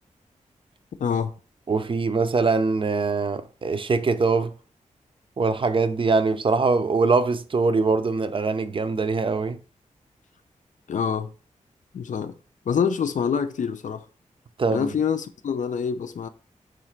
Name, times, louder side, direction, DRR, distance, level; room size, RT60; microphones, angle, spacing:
voice 1, 1.0-1.3 10.9-11.3 11.9-12.3 12.7-14.1 14.7-16.3, left 7 dB, 70° left, 0.4 m, -26 dB
voice 2, 1.7-4.5 5.4-9.6 14.6-14.9, right 4 dB, 40° right, 0.4 m, -23 dB
3.9 x 2.4 x 4.3 m
cardioid pair, 55°, 13 cm